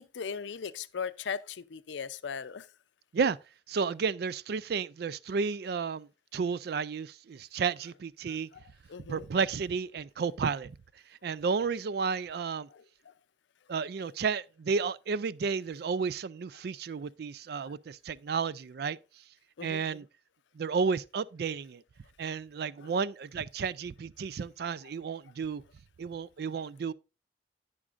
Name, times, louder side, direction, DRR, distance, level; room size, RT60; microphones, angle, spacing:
voice 1, 0.0-2.7 8.5-8.6 8.9-9.3 12.7-13.1 17.6-17.7 19.6-19.8 22.8-22.9, left 6 dB, 85° left, 0.5 m, -39 dB
voice 2, 3.7-8.5 9.1-10.7 11.2-12.7 13.7-19.0 19.6-20.1 20.5-21.8 22.2-25.6 26.0-26.9, right 5 dB, 60° right, 0.4 m, -32 dB
11.0 x 8.5 x 2.5 m
head